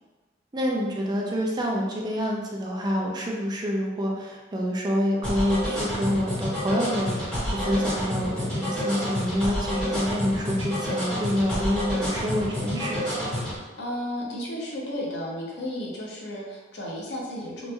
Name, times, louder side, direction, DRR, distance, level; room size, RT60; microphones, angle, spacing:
voice 1, 0.5-13.2, equal, 25° right, -1 dB, 0.4 m, -27 dB
sound 1, 5.2-13.5, equal, 5° left, 1.4 m, -29 dB
voice 2, 13.8-17.7, left 1 dB, 75° left, -3 dB, 0.7 m, -33 dB
2.9 x 2.5 x 2.3 m, 1.3 s
head